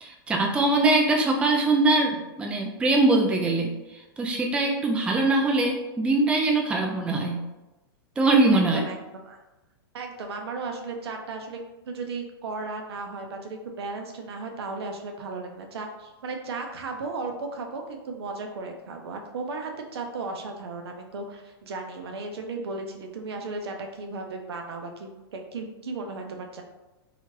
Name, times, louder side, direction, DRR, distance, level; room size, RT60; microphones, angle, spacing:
voice 1, 0.0-3.7 4.2-7.4 8.2-8.8, right 2 dB, 10° right, 1 dB, 0.3 m, -22 dB
voice 2, 8.5-9.4 9.9-11.6 11.9-26.6, right 3 dB, 75° right, 3 dB, 0.5 m, -35 dB
2.8 x 2.4 x 2.9 m, 1.1 s
hypercardioid pair, 120°, 13 cm